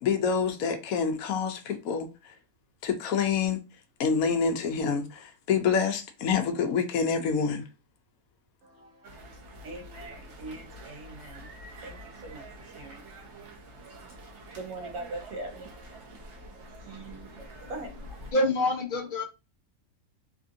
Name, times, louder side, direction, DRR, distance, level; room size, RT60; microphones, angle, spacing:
voice 1, 0.0-2.3 2.8-3.6 4.0-7.6, left 6 dB, 75° left, 1.1 m, -27 dB
voice 2, 8.6-18.3, right 2 dB, 75° right, 1.2 m, -44 dB
sound 1, 9.0-18.3, right 1 dB, 55° right, 1.0 m, -47 dB
voice 3, 17.1-17.4 18.3-19.2, left 1 dB, 55° left, 0.6 m, -27 dB
3.5 x 2.6 x 2.6 m
omnidirectional pair, 1.5 m